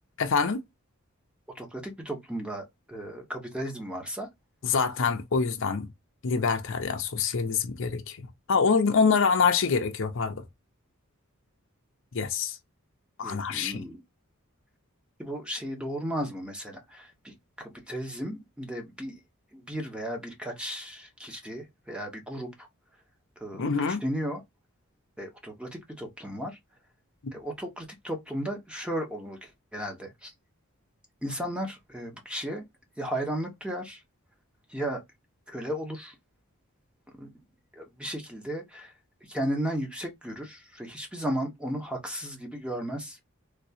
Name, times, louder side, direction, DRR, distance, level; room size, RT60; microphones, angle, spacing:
voice 1, 0.2-0.6 4.6-5.9 6.2-10.4 12.1-12.6 13.2-13.9 23.5-24.0 27.2-27.3, left 5 dB, 60° left, 0.6 m, -26 dB
voice 2, 1.5-4.3 13.2-14.0 15.2-19.2 19.5-22.7 23.4-24.4 25.2-26.6 27.3-30.3 31.2-32.7 33.0-34.0 34.7-35.0 35.5-36.1 37.2-37.3 37.8-38.9 39.3-43.2, equal, 5° right, 1.0 m, -35 dB
3.4 x 2.9 x 2.8 m
head